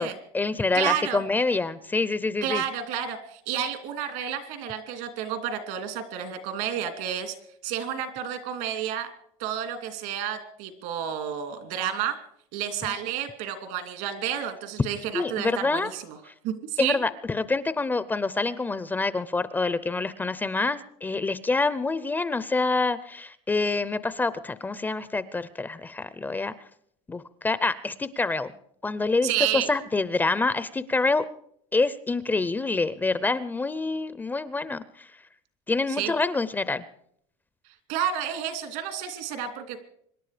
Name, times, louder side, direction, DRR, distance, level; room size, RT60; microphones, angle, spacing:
voice 1, 0.0-2.6 12.8-12.9 15.1-15.9 16.8-26.5 27.1-28.5 28.8-31.3 31.7-35.1 35.7-36.8, left 3 dB, 10° left, 15 dB, 0.6 m, -26 dB
voice 2, 0.7-1.2 2.4-7.3 7.6-9.1 9.4-12.2 12.5-16.2 16.4-17.0 29.2-29.7 36.0-36.1 37.9-39.8, right 9 dB, 70° right, 9 dB, 2.7 m, -30 dB
25.5 x 11.0 x 5.0 m, 0.68 s
cardioid pair, 140°, 15 cm